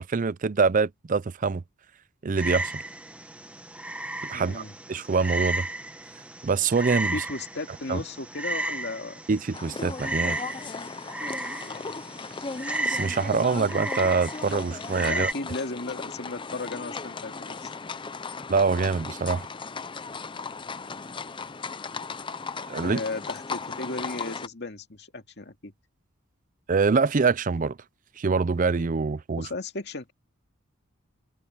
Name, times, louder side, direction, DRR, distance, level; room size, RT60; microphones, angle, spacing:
voice 1, 0.0-1.6 2.2-2.8 4.2-4.6 4.9-5.7 6.4-7.2 7.9-8.0 9.3-10.4 12.9-15.3 18.5-19.5 22.7-23.0 26.7-27.8 28.2-29.5, right 4 dB, 40° right, 0.5 m, -25 dB
Frog, 2.4-15.3, right 2 dB, 5° right, 1.2 m, -34 dB
voice 2, 4.3-4.7 7.1-9.2 11.6-11.9 15.1-17.7 22.8-25.7 29.4-30.1, left 3 dB, 55° left, 2.3 m, -35 dB
sound 1, 9.5-24.5, left 4 dB, 25° left, 0.6 m, -37 dB
head